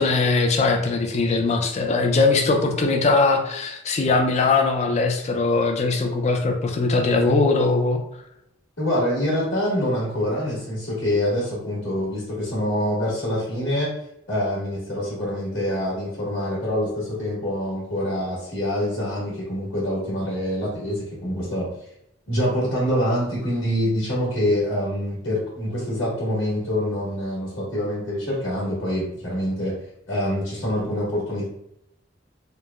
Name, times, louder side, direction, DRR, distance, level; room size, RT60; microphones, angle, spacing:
voice 1, 0.0-8.0, left 3 dB, 35° left, 3 dB, 0.4 m, -20 dB
voice 2, 8.8-13.9 14.3-21.7 22.3-29.7 30.1-31.5, equal, 90° left, -7 dB, 1.1 m, -25 dB
3.1 x 2.0 x 2.3 m, 0.79 s
head